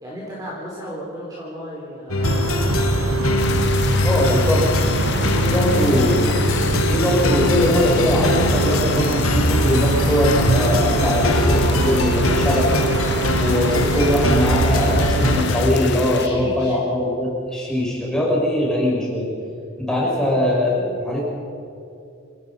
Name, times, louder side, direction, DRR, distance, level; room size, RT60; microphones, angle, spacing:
voice 1, 0.0-3.0 16.2-16.8, equal, 15° right, -5 dB, 4.1 m, -35 dB
sound 1, 2.1-15.7, left 2 dB, 80° left, 1.6 m, -22 dB
sound 2, 2.2-15.4, right 2 dB, 80° right, 0.9 m, -24 dB
sound 3, 3.4-16.3, left 6 dB, 55° left, 1.0 m, -30 dB
voice 2, 4.0-6.4 6.9-13.1 13.4-19.3 19.8-21.2, left 1 dB, 5° left, -4 dB, 6.4 m, -21 dB
27.5 x 18.0 x 5.7 m, 2.6 s
head